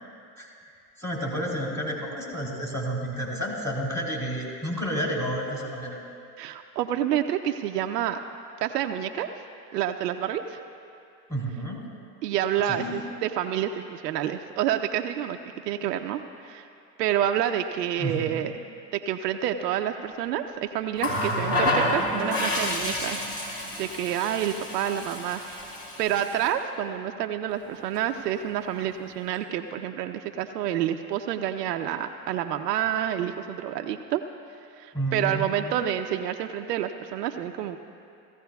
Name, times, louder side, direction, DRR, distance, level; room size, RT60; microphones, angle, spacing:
voice 1, 1.0-6.0 11.3-11.8 12.7-13.0 18.0-18.5 34.9-35.8, right 1 dB, 5° left, -3 dB, 2.8 m, -31 dB
voice 2, 6.4-8.2 8.6-9.3 9.7-10.6 12.2-15.4 15.6-16.7 17.0-18.5 18.9-23.2 23.8-25.4 26.0-34.2 34.8-37.8, right 10 dB, 70° right, 6 dB, 0.7 m, -28 dB
Water tap faucet, 21.0-26.5 27.7-27.9, left 1 dB, 30° left, 3.0 m, -29 dB
17.5 x 14.5 x 2.3 m, 2.5 s
hypercardioid pair, 105°, 50 cm